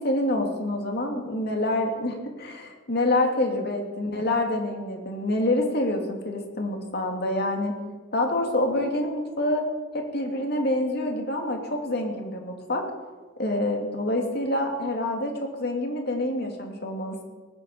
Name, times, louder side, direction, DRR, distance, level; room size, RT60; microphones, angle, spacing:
voice 1, 0.0-7.8 8.1-9.7 9.9-12.8 13.4-17.2, left 1 dB, 55° left, 2 dB, 2.6 m, -27 dB
19.0 x 9.9 x 7.3 m, 1.4 s
head